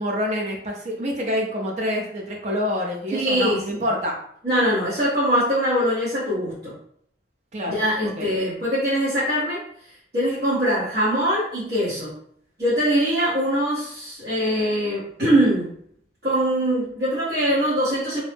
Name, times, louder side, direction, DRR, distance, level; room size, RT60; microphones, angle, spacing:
voice 1, 0.0-4.2 7.5-7.8 8.2-8.3, equal, 40° right, -1 dB, 0.5 m, -26 dB
voice 2, 3.1-3.8 4.4-6.7 7.7-9.6 10.1-12.1 12.6-15.7 16.2-18.2, equal, 60° right, -10 dB, 1.0 m, -22 dB
2.6 x 2.0 x 3.3 m, 0.64 s
head